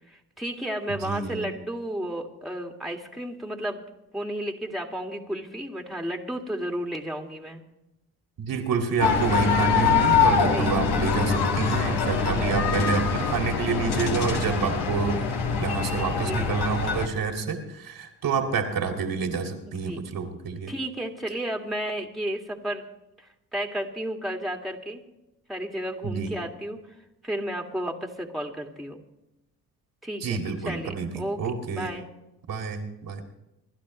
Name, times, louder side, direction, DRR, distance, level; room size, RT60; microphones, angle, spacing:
voice 1, 0.1-3.8 4.1-7.6 10.5-10.8 12.3-12.6 16.1-16.6 19.7-20.0 20.7-22.9 23.2-25.0 25.5-26.8 27.2-29.0 30.0-30.4 30.7-31.4 31.7-32.1, right 1 dB, ahead, 3 dB, 2.2 m, -33 dB
voice 2, 1.0-1.5 8.4-15.2 15.6-20.7 26.0-26.3 30.2-31.9 32.5-33.2, right 5 dB, 55° right, 4 dB, 2.3 m, -28 dB
sound 1, 9.0-17.1, left 5 dB, 65° left, 2.0 m, -24 dB
27.0 x 11.5 x 3.1 m, 0.89 s
hypercardioid pair, 50°, 42 cm